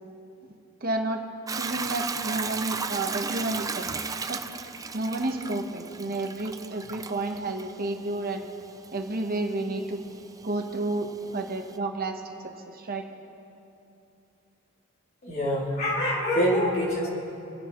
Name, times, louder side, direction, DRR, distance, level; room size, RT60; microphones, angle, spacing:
voice 1, 0.8-1.2 1.6-3.9 4.3-4.4 4.9-8.4 8.9-10.0 10.4-12.2 12.7-13.0, right 2 dB, 45° right, 3 dB, 1.1 m, -30 dB
Hiss / Toilet flush / Trickle dribble, 1.5-11.8, right 5 dB, 15° right, 0.4 m, -36 dB
voice 2, 15.2-17.1, equal, 50° left, -7 dB, 3.5 m, -25 dB
27.0 x 10.5 x 3.1 m, 2.9 s
head